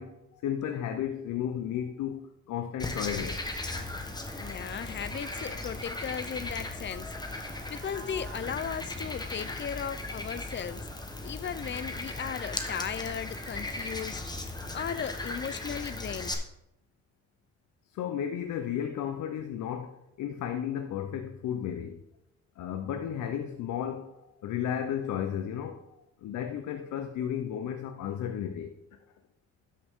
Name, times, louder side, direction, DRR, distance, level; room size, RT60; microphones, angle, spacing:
voice 1, 0.0-3.4 17.9-22.0 22.6-24.2 24.4-25.8 26.2-28.7, left 9 dB, 75° left, 0.7 m, -33 dB
Frog, 2.8-16.3, left 2 dB, 15° left, 1.2 m, -37 dB
voice 2, 4.4-10.9 11.2-14.3 14.7-16.4, left 8 dB, 40° left, 0.5 m, -37 dB
Livestock farm animals working animals, 4.7-5.7 7.0-8.5, right 6 dB, 85° right, 1.1 m, -51 dB
12.5 x 5.8 x 3.6 m
cardioid pair, 90°, 30 cm